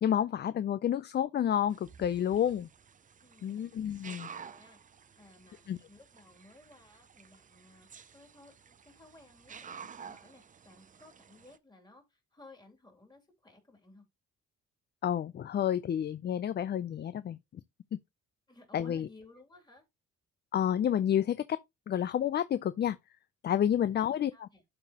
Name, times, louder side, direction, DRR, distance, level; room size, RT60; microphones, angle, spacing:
voice 1, 0.0-2.7 3.4-4.3 5.7-5.8 15.0-17.4 18.7-19.1 20.5-21.6 21.9-23.0 23.4-24.5, left 10 dB, 35° left, 0.4 m, -30 dB
sound 1, 1.7-11.6, right 7 dB, 25° right, 0.5 m, -52 dB
voice 2, 3.2-3.7 4.3-4.8 5.2-7.9 8.1-14.0 18.5-19.8 23.8-24.1 24.3-24.6, left 2 dB, 15° left, 2.6 m, -58 dB
12.0 x 3.9 x 2.8 m
cardioid pair, 90°, 30 cm